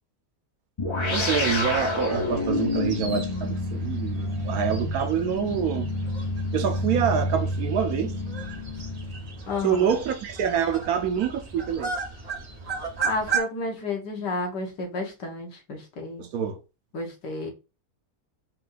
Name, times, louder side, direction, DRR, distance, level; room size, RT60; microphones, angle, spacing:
sound 1, 0.8-9.6, left 2 dB, 35° left, 0.4 m, -29 dB
sound 2, 1.1-13.4, right 5 dB, 40° right, 0.6 m, -36 dB
voice 1, 1.1-5.9 6.5-8.1 9.6-11.9 16.2-16.6, right 8 dB, 70° right, 1.1 m, -26 dB
voice 2, 9.5-9.9 13.0-16.2 16.9-17.5, left 2 dB, 90° left, 1.9 m, -31 dB
4.5 x 2.7 x 3.8 m
omnidirectional pair, 1.8 m